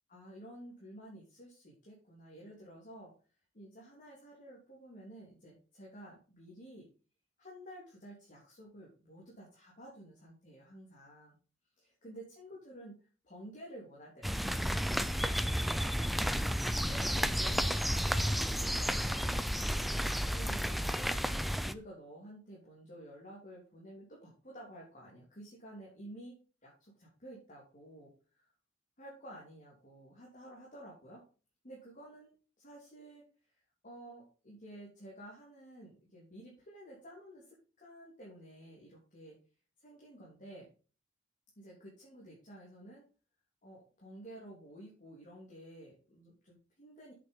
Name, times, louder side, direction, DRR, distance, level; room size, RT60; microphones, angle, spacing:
voice 1, 0.1-3.1 3.5-6.9 7.4-11.4 11.8-15.2 16.8-21.2 21.6-28.4 29.0-31.2 31.6-33.2 33.8-39.3 39.8-40.7 41.5-43.0 43.6-47.1, right 1 dB, 40° left, -4 dB, 3.4 m, -52 dB
sound 1, 14.2-21.7, equal, ahead, 0.5 m, -32 dB
8.3 x 7.0 x 5.5 m, 0.37 s
head